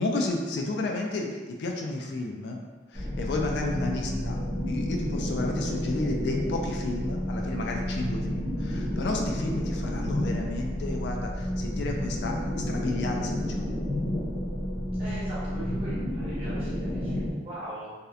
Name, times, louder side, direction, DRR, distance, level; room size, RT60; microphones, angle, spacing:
voice 1, 0.0-2.6 2.9-4.4 4.7-12.3 12.7-13.7, left 2 dB, 65° left, 1 dB, 0.3 m, -32 dB
sound 1, 2.9-17.3, left 1 dB, 15° left, 0.7 m, -30 dB
voice 2, 4.0-4.3 15.0-17.9, right 1 dB, 30° right, -10 dB, 1.0 m, -40 dB
2.8 x 2.0 x 2.3 m, 1.3 s
head